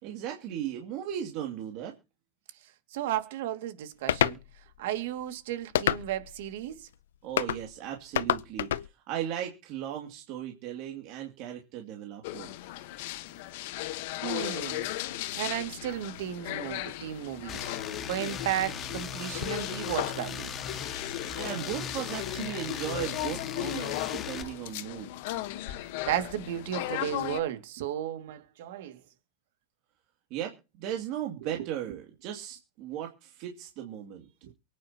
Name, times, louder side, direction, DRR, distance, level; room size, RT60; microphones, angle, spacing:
voice 1, 0.0-2.0 7.2-12.5 21.3-25.2 30.3-34.3, right 10 dB, 45° right, 2.6 m, -37 dB
voice 2, 2.9-4.4 4.8-6.9 14.2-14.9 15.3-17.6 18.1-20.5 25.7-25.8 26.1-29.0 34.4-34.5, right 12 dB, 70° right, 2.2 m, -34 dB
sound 1, 4.1-4.4 5.7-6.3 7.4-7.6 8.1-8.9, left 11 dB, 90° left, 0.6 m, -26 dB
sound 2, 12.2-27.4, left 15 dB, 60° left, 1.2 m, -36 dB
sound 3, 17.5-24.4, left 7 dB, 30° left, 1.8 m, -38 dB
24.0 x 9.6 x 2.9 m
supercardioid pair, 145°, 0 cm